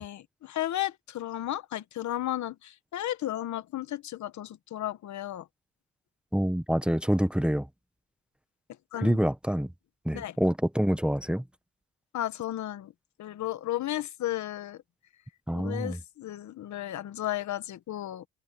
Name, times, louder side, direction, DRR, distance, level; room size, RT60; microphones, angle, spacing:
voice 1, 0.0-5.5 8.9-9.2 10.1-10.4 12.1-12.9 13.2-14.8 15.5-18.3, left 13 dB, 70° left, 1.3 m, -34 dB
voice 2, 6.3-7.7 9.0-9.7 10.0-11.4 15.5-16.0, equal, 5° right, 1.1 m, -26 dB
cardioid pair, 90°, 30 cm